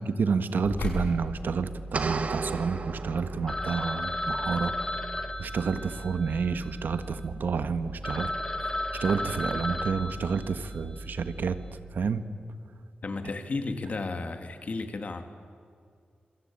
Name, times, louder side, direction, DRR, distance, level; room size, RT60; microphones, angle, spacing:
voice 1, 0.0-4.7 5.4-8.3 9.0-11.6 11.9-12.2, right 5 dB, 75° right, 10 dB, 1.5 m, -29 dB
sound 1, 0.6-11.7, equal, 90° left, 5.9 m, -40 dB
sound 2, 1.9-3.9, right 4 dB, 45° right, 1.7 m, -34 dB
Telephone, 3.5-7.3 7.7-7.8 8.0-10.9, left 1 dB, 20° left, 1.8 m, -34 dB
voice 2, 13.0-15.2, left 3 dB, 45° left, 7 dB, 2.4 m, -33 dB
26.5 x 24.5 x 8.8 m, 2.2 s
wide cardioid pair, 145°, 3 cm